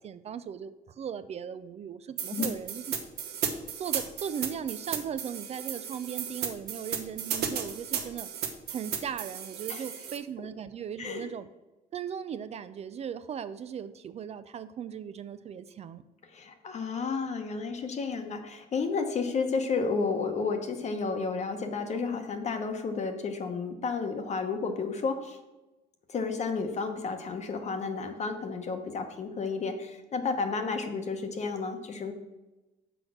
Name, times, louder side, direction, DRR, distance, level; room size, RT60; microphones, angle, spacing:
voice 1, 0.0-2.9 3.8-8.3 8.7-11.5 11.9-16.0, right 8 dB, 40° right, 13 dB, 0.4 m, -38 dB
sound 1, 2.2-10.2, right 8 dB, 70° right, 1.0 m, -34 dB
voice 2, 16.3-25.4 26.1-32.1, left 4 dB, 40° left, 5 dB, 0.9 m, -32 dB
6.1 x 4.9 x 6.2 m, 1.1 s
cardioid pair, 110°, 17 cm